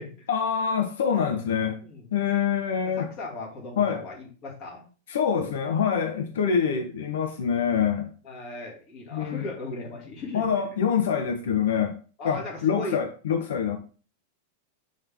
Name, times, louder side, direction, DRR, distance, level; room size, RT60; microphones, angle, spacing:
voice 1, 0.3-1.8 2.1-3.1 3.8-4.0 5.1-8.1 9.1-9.4 10.3-12.0 12.2-13.8, left 7 dB, 80° left, 5 dB, 1.0 m, -25 dB
voice 2, 2.8-4.8 6.7-6.9 8.2-10.7 12.2-13.0, left 2 dB, 30° left, -2 dB, 2.3 m, -38 dB
7.6 x 3.7 x 3.5 m, 0.37 s
supercardioid pair, 180°, 0 cm